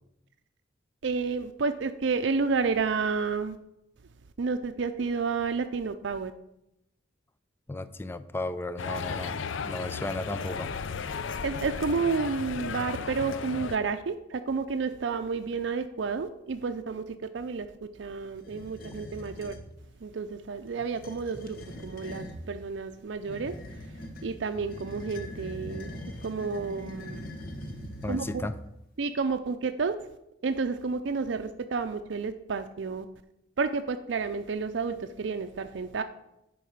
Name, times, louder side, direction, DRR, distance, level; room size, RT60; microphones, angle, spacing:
voice 1, 1.0-3.6 4.4-6.3 11.4-17.0 17.3-17.7 18.0-19.5 20.0-21.6 21.8-23.5 24.2-25.9 26.2-27.2 28.1-28.5 29.0-29.9 30.4-33.1 33.6-36.0, right 4 dB, 70° right, 0.5 m, -30 dB
voice 2, 7.7-10.7 28.0-28.5, left 2 dB, 10° left, 0.4 m, -34 dB
sound 1, 8.8-13.8, left 5 dB, 90° left, 0.5 m, -35 dB
sound 2, 18.4-19.7 20.8-22.5 23.2-28.8, equal, 50° left, 1.1 m, -42 dB
10.0 x 4.7 x 6.4 m
head